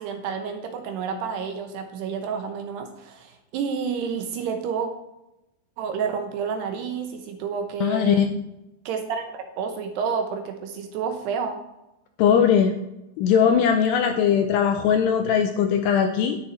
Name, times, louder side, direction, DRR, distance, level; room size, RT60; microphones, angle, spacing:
voice 1, 0.0-4.9 5.8-8.3 8.9-11.6 14.2-14.3, right 6 dB, 75° right, 5 dB, 2.7 m, -30 dB
voice 2, 7.8-8.3 12.2-12.7 13.2-16.4, left 8 dB, 85° left, 6 dB, 2.5 m, -20 dB
10.5 x 9.7 x 4.2 m, 0.91 s
omnidirectional pair, 5.4 m